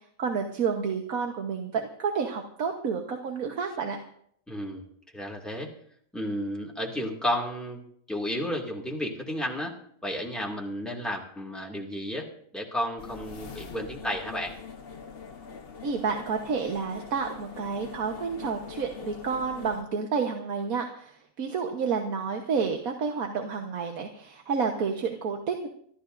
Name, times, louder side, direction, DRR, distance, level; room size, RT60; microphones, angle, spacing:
voice 1, 0.2-4.0 15.8-25.7, right 5 dB, 80° right, 3 dB, 1.6 m, -30 dB
voice 2, 4.5-4.8 5.1-5.7 6.1-7.8 8.1-12.3 12.5-14.6, equal, ahead, -1 dB, 2.2 m, -32 dB
sound 1, 13.0-19.8, left 5 dB, 45° left, 1.2 m, -43 dB
25.5 x 13.0 x 2.6 m, 0.65 s
omnidirectional pair, 1.5 m